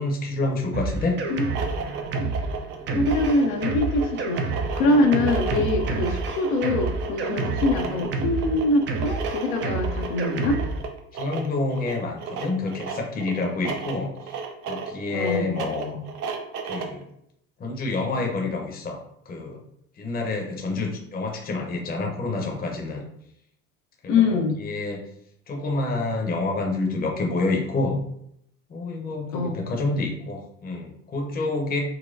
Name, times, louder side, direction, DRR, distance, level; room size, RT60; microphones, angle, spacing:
voice 1, 0.0-1.2 2.9-3.0 5.8-5.9 11.1-16.0 16.7-17.1 17.6-19.0 19.3-19.6 20.0-23.0 24.0-24.1 24.6-25.0 25.5-28.0 28.7-31.8, left 3 dB, 20° left, 1 dB, 0.7 m, -28 dB
Drum kit, 0.7-10.8, right 3 dB, 25° right, 0.4 m, -29 dB
sound 1, 1.3-17.0, right 5 dB, 85° right, 0.7 m, -34 dB
voice 2, 2.9-10.6 15.1-15.5 24.1-24.6 29.3-29.7, left 2 dB, 65° left, 3 dB, 0.7 m, -24 dB
4.1 x 2.2 x 2.5 m, 0.72 s
hypercardioid pair, 85°, 44 cm